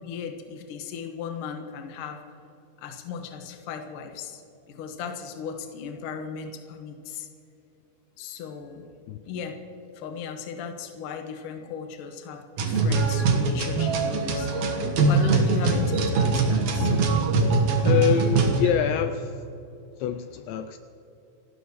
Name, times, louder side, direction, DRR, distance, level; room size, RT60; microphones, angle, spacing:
voice 1, 0.0-2.2 2.8-4.4 4.7-7.3 8.2-8.8 9.3-9.6 9.9-16.9, left 6 dB, 65° left, 4 dB, 2.1 m, -36 dB
sound 1, 12.6-18.7, right 3 dB, 80° right, 1.6 m, -22 dB
voice 2, 17.8-19.5 20.0-20.8, left 8 dB, 80° left, 9 dB, 2.7 m, -25 dB
29.0 x 13.0 x 3.1 m, 2.9 s
omnidirectional pair, 5.5 m